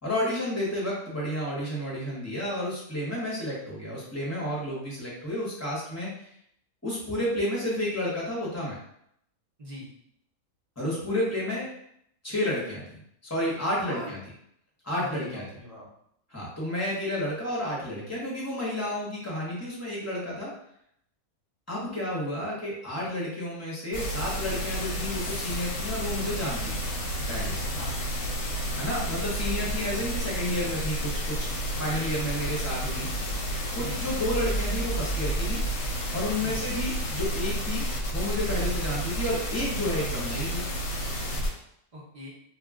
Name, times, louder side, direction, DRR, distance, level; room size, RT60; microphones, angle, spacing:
voice 1, 0.0-6.1 6.8-8.8 10.8-11.7 12.2-12.8 13.3-14.2 14.8-15.4 16.3-20.5 21.7-26.8 27.3-27.7 28.8-31.4 31.8-33.1 33.7-35.6 36.1-37.9 38.1-40.6, left 1 dB, 15° left, -5 dB, 0.6 m, -31 dB
voice 2, 13.9-14.2 15.0-15.9 27.7-27.9 33.8-34.0 36.4-36.6 41.9-42.3, equal, 40° right, -5 dB, 0.5 m, -41 dB
sound 1, 23.9-41.5, equal, 60° left, 0.8 m, -30 dB
2.3 x 2.2 x 3.5 m, 0.72 s
omnidirectional pair, 1.5 m